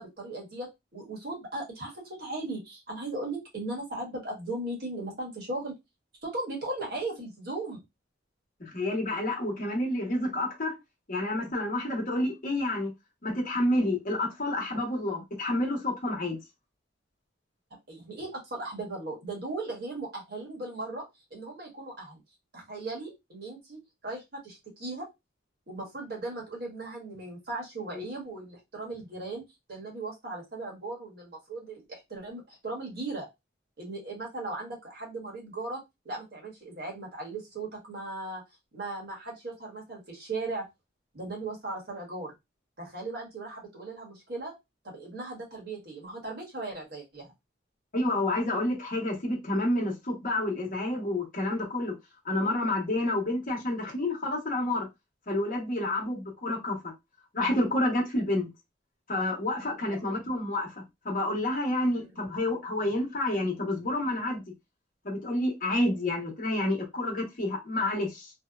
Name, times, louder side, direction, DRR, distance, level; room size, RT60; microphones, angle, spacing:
voice 1, 0.0-5.7 6.2-7.8 17.9-21.0 21.3-22.2 22.5-25.0 25.7-29.4 29.7-33.3 33.8-35.8 36.0-38.4 38.7-40.7 41.1-42.3 42.8-44.5 44.8-47.3 60.0-60.2, right 2 dB, 55° right, 1.2 m, -37 dB
voice 2, 8.6-10.8 11.1-12.9 13.2-16.4 27.9-28.0 47.9-52.0 52.2-54.9 55.3-56.8 57.3-58.5 59.1-64.4 65.0-68.3, left 1 dB, 45° left, 0.9 m, -29 dB
2.7 x 2.1 x 2.3 m
head